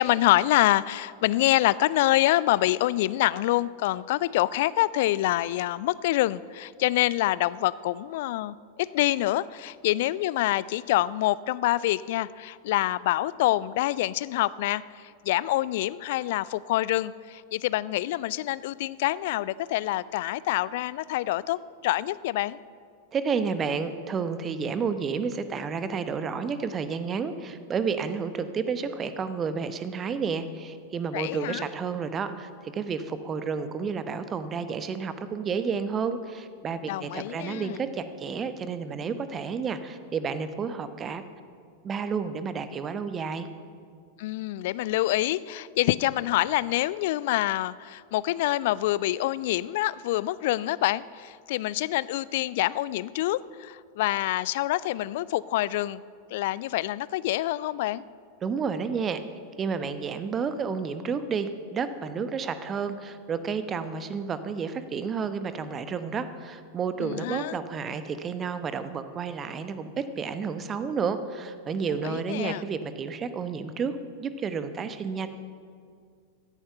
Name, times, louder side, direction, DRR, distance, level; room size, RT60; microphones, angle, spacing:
voice 1, 0.0-22.6 31.1-31.6 36.9-37.8 44.2-56.0 56.3-58.0 67.0-67.6 72.0-72.6, left 16 dB, 50° left, 19 dB, 0.3 m, -26 dB
voice 2, 23.1-41.2 41.8-43.5 58.4-59.2 59.6-75.3, right 5 dB, 25° right, 11 dB, 0.9 m, -31 dB
16.0 x 10.0 x 5.7 m, 2.2 s
figure-of-eight pair, 90°, 0 cm